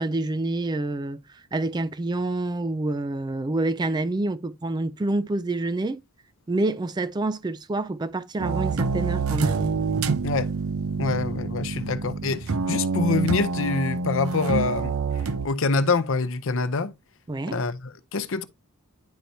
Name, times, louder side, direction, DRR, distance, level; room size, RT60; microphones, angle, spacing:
voice 1, 0.0-6.0 6.5-9.7 17.3-17.6, right 2 dB, 20° right, 0.3 m, -27 dB
sound 1, 8.4-15.5, right 4 dB, 70° right, 0.6 m, -27 dB
voice 2, 10.2-10.5 11.0-15.0 15.2-16.9 17.5-18.4, left 3 dB, 60° left, 0.7 m, -26 dB
10.0 x 4.5 x 2.7 m
head